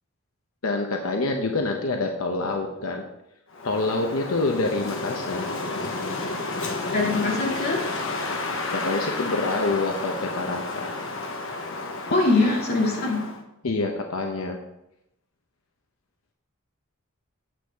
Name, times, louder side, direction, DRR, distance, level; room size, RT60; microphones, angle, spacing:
voice 1, 0.6-3.0 3.6-5.5 8.7-10.9 13.6-14.6, left 3 dB, 90° left, 3 dB, 0.8 m, -26 dB
Wind, 3.5-13.4, left 2 dB, 70° left, 1.1 m, -31 dB
voice 2, 6.9-7.9 12.1-13.2, left 3 dB, 50° left, -3 dB, 2.4 m, -22 dB
9.0 x 8.0 x 3.5 m, 0.85 s
head